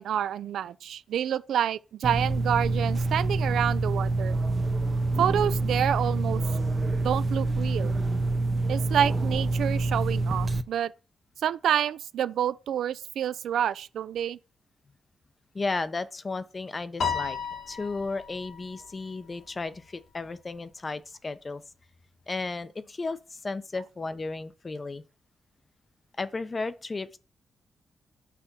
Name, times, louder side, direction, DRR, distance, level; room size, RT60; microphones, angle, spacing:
voice 1, 0.0-4.4 5.2-6.4 7.0-7.9 8.7-10.9 11.4-14.4, right 9 dB, 85° right, 0.3 m, -28 dB
sound 1, 2.0-10.6, right 2 dB, 35° right, 0.5 m, -26 dB
voice 2, 15.5-17.4 17.7-21.6 22.3-25.0 26.2-27.2, left 3 dB, 30° left, 0.6 m, -34 dB
Piano, 17.0-19.5, left 6 dB, 65° left, 1.6 m, -34 dB
5.8 x 3.5 x 5.4 m
cardioid pair, 100°, 0 cm